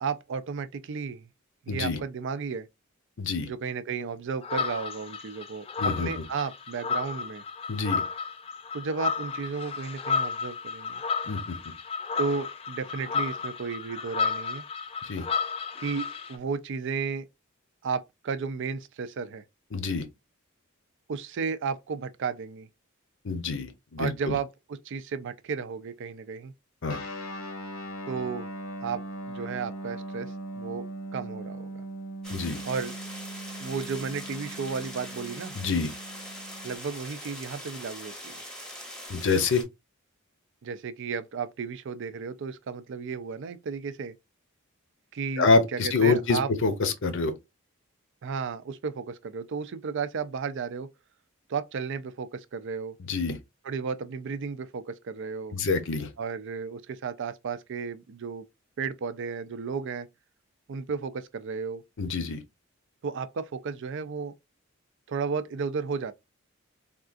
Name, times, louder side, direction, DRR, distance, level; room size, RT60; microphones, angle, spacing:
voice 1, 0.0-1.3 1.7-2.7 3.4-7.4 8.7-11.0 12.2-14.6 15.8-17.3 17.8-19.4 21.1-22.7 24.0-26.5 28.1-28.5 28.8-30.8 31.1-31.7 32.6-33.0 33.6-35.5 36.6-38.4 40.6-44.1 45.1-46.5 48.2-50.9 51.5-53.0 53.6-55.6 56.2-58.5 58.8-60.1 60.7-61.8 63.0-64.3 65.1-66.1, right 5 dB, 60° right, 0.4 m, -33 dB
voice 2, 1.7-2.0 3.2-3.5 5.8-6.1 7.7-8.0 11.3-11.6 15.1-15.3 19.7-20.1 23.2-24.3 26.8-27.0 32.3-32.6 35.5-35.9 39.1-39.6 45.4-47.3 53.0-53.4 55.5-56.1 62.0-62.4, left 4 dB, 60° left, 0.7 m, -26 dB
sound 1, 4.4-16.4, left 5 dB, 25° left, 0.3 m, -32 dB
Guitar, 26.9-36.8, right 1 dB, 90° left, 1.0 m, -40 dB
sound 2, 32.2-39.6, equal, 5° left, 0.8 m, -42 dB
3.6 x 2.4 x 2.4 m
head